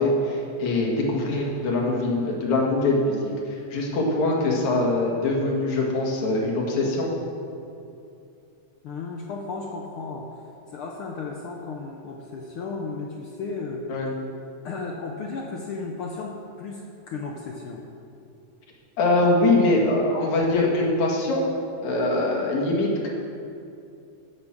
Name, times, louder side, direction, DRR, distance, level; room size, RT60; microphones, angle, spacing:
voice 1, 0.0-3.2 3.5-7.1 13.9-14.1 19.0-21.4 21.8-23.1, left 2 dB, 65° left, -2 dB, 3.2 m, -23 dB
voice 2, 8.8-10.4 10.7-13.9 14.6-17.9, left 4 dB, 80° left, 1 dB, 1.2 m, -34 dB
10.0 x 8.5 x 7.4 m, 2.6 s
omnidirectional pair, 3.6 m